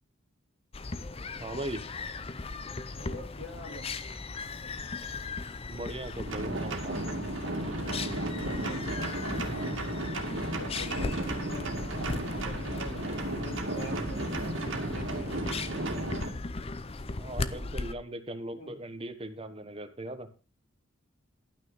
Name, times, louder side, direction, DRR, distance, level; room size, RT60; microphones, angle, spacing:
sound 1, 0.7-17.9, left 3 dB, 30° left, 0.6 m, -38 dB
voice 1, 1.4-1.8 5.7-7.0 17.2-20.3, right 1 dB, 25° right, 9 dB, 1.1 m, -39 dB
voice 2, 2.9-3.9 8.4-9.3 10.4-13.0 13.3-15.3 18.5-18.7, equal, 65° left, 0 dB, 2.9 m, -45 dB
sound 2, 6.3-16.3, right 1 dB, 65° right, 2.1 m, -34 dB
12.0 x 6.3 x 5.6 m, 0.33 s
head